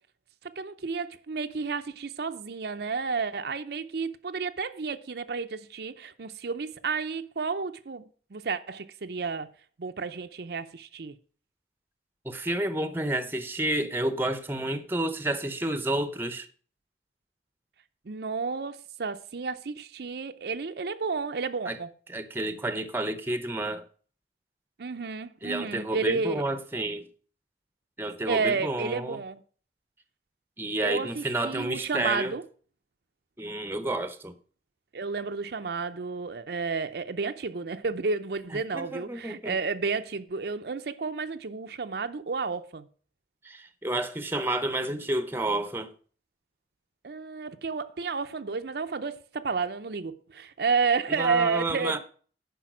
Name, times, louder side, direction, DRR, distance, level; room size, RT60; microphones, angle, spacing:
voice 1, 0.4-9.5 9.8-11.2 18.1-21.9 24.8-26.4 28.3-29.4 30.8-32.4 34.9-42.9 47.0-52.0, right 4 dB, 60° right, 0.6 m, -31 dB
voice 2, 12.2-16.5 21.7-21.8 22.1-23.8 25.4-27.0 28.0-29.2 30.6-32.4 33.4-34.3 38.7-39.5 43.4-45.9 51.1-52.0, right 1 dB, 10° right, 0.7 m, -30 dB
10.0 x 5.5 x 6.1 m
head